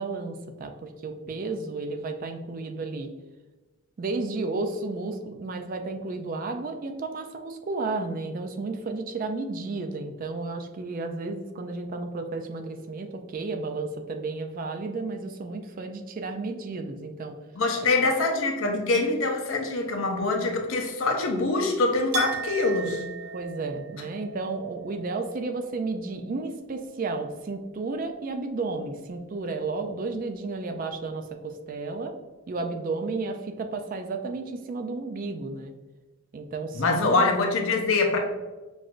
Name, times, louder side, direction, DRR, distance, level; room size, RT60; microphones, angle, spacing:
voice 1, 0.0-3.1 4.0-17.3 23.3-32.1 32.5-35.7 36.3-37.3, right 3 dB, 40° right, 5 dB, 0.3 m, -32 dB
voice 2, 17.5-23.0 36.7-38.2, left 3 dB, 65° left, 3 dB, 0.6 m, -24 dB
Chink clink, 22.1-27.6 27.9-28.8, right 6 dB, 70° right, 0.6 m, -39 dB
5.9 x 2.5 x 2.4 m, 1.2 s
head